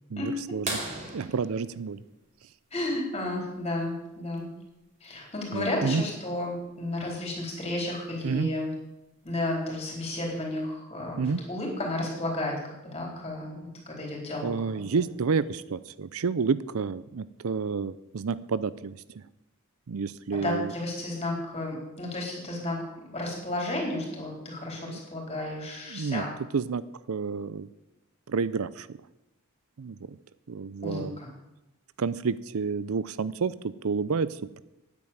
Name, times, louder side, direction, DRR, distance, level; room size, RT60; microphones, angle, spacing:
voice 1, 0.1-0.8 1.1-2.0 5.5-6.0 8.2-8.5 11.2-11.4 14.4-19.2 19.9-20.7 24.8-25.0 25.9-26.2 26.5-26.8 27.1-27.7 28.3-29.0 29.8-30.2 30.5-31.2 32.0-34.6, right 5 dB, 75° right, 17 dB, 0.5 m, -30 dB
sound 1, 0.7-3.1 5.0-5.1 7.4-7.5 9.2-9.4 10.2-10.3, right 2 dB, 35° right, 2.7 m, -37 dB
voice 2, 2.7-4.5 5.0-8.7 9.2-14.5 20.3-22.8 23.1-26.3 30.8-31.3, left 1 dB, 25° left, -1 dB, 4.1 m, -32 dB
9.9 x 8.7 x 8.8 m, 0.95 s
head